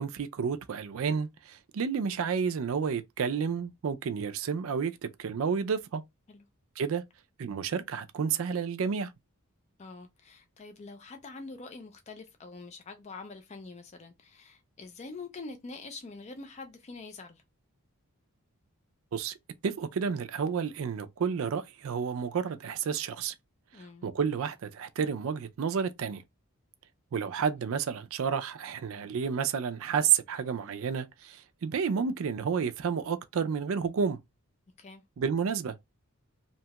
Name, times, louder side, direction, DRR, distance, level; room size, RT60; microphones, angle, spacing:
voice 1, 0.0-6.0 6.8-7.0 7.4-9.1 19.1-19.4 19.6-23.3 24.0-26.2 27.1-34.2 35.2-35.8, right 6 dB, 60° right, 0.4 m, -30 dB
voice 2, 9.8-17.4 23.7-24.1 34.8-35.0, left 3 dB, 30° left, 0.4 m, -45 dB
2.8 x 2.2 x 2.8 m
head